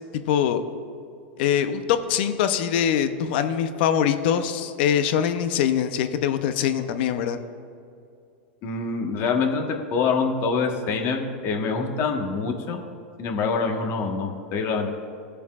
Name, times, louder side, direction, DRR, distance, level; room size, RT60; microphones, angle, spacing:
voice 1, 0.3-0.6 1.4-7.4, left 9 dB, 65° left, 9 dB, 0.7 m, -23 dB
voice 2, 8.6-12.8 13.2-14.9, left 4 dB, 45° left, 3 dB, 1.4 m, -25 dB
17.5 x 6.8 x 2.5 m, 2.4 s
hypercardioid pair, 120°, 6 cm